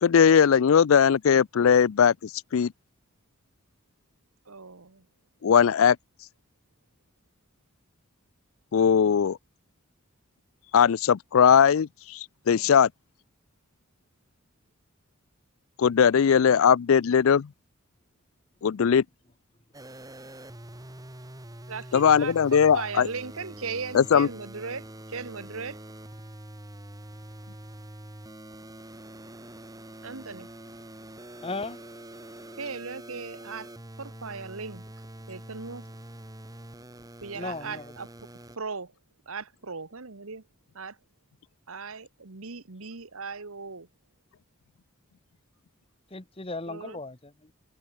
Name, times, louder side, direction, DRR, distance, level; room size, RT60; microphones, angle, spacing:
voice 1, 0.0-2.1 2.5-2.7 5.4-6.0 8.7-9.4 10.7-12.9 15.8-17.5 18.6-19.0 21.9-23.1 23.9-24.3, left 7 dB, 65° left, 0.4 m, -19 dB
voice 2, 4.5-5.1 21.7-25.8 30.0-30.5 32.6-33.7 34.0-35.9 37.2-38.1 38.5-38.9 39.3-40.4 40.7-41.0 41.7-43.9 46.7-47.0, right 4 dB, 70° right, 1.3 m, -38 dB
sound 1, 19.7-38.6, right 1 dB, 15° right, 2.4 m, -45 dB
voice 3, 31.4-31.8 37.3-37.8 46.1-47.5, left 3 dB, 25° left, 1.2 m, -36 dB
head